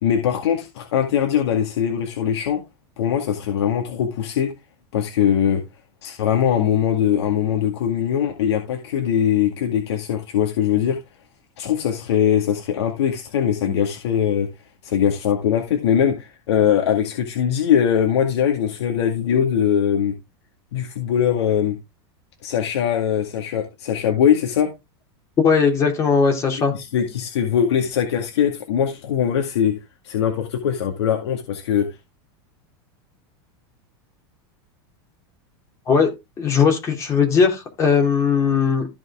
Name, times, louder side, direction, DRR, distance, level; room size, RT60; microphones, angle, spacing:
voice 1, 0.0-2.6 3.0-4.5 4.9-5.6 6.0-11.0 11.6-14.5 14.8-20.1 20.7-21.8 22.4-24.7 26.7-31.9, left 9 dB, 85° left, 2.0 m, -21 dB
voice 2, 25.4-26.7 35.9-36.1 36.4-38.9, left 5 dB, 20° left, 2.9 m, -18 dB
14.0 x 5.5 x 3.6 m
supercardioid pair, 165°, 14 cm